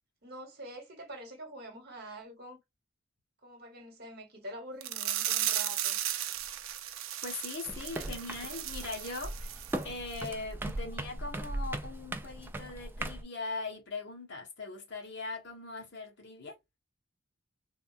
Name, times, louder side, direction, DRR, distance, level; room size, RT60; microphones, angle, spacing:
voice 1, 0.2-2.6 3.4-6.0, right 1 dB, 55° right, 1.2 m, -46 dB
sound 1, 4.8-9.8 10.1-10.3 10.7-10.8, right 12 dB, 90° right, 0.4 m, -35 dB
voice 2, 7.2-16.5, left 3 dB, 60° left, 1.1 m, -40 dB
sound 2, 7.7-13.2, right 1 dB, 10° right, 0.3 m, -38 dB
3.5 x 2.2 x 2.4 m
head